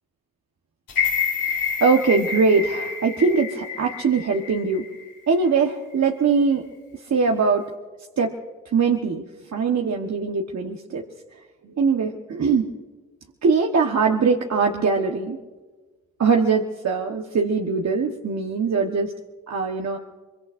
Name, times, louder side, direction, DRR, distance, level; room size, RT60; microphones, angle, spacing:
sound 1, 0.9-5.0 5.4-5.5, left 6 dB, 85° left, 4.3 m, -28 dB
voice 1, 1.8-4.9 5.3-6.6 7.1-7.6 8.2-8.3 8.7-9.2 9.5-11.0 11.6-12.7 13.4-15.4 16.2-19.1 19.5-20.0, right 5 dB, 50° right, 1 dB, 1.3 m, -21 dB
23.5 x 23.5 x 2.6 m, 1.3 s
supercardioid pair, 55°, 34 cm